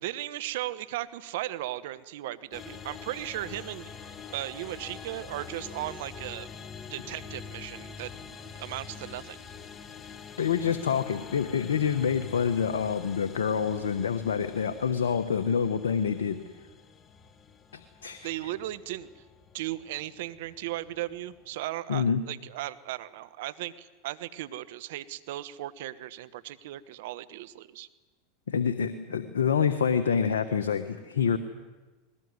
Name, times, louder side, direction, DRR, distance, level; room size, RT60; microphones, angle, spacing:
voice 1, 0.0-3.9 4.3-6.5 6.9-8.1 8.6-9.4 18.2-19.1 19.5-27.9, right 15 dB, 70° right, 15 dB, 1.2 m, -36 dB
sound 1, 2.5-21.6, left 6 dB, 30° left, 1.7 m, -46 dB
voice 2, 10.4-16.4 18.0-18.3 21.9-22.2 28.5-31.4, left 7 dB, 85° left, 9 dB, 1.2 m, -27 dB
20.5 x 18.5 x 9.7 m, 1.2 s
hypercardioid pair, 95°, 0 cm